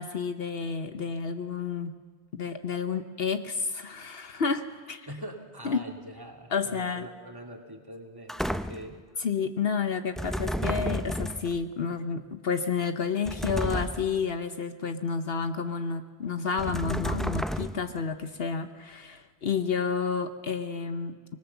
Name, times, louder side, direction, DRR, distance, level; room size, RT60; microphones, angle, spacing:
voice 1, 0.0-2.0 2.3-5.1 5.6-5.8 6.5-7.1 9.2-21.2, left 5 dB, 65° left, 9 dB, 1.1 m, -30 dB
voice 2, 5.1-9.0, equal, 20° right, 2 dB, 2.6 m, -43 dB
sound 1, 8.3-9.0 10.2-11.6 13.3-14.2 16.6-18.0, equal, ahead, 0.3 m, -32 dB
24.5 x 20.0 x 7.0 m, 1.5 s
omnidirectional pair, 1.1 m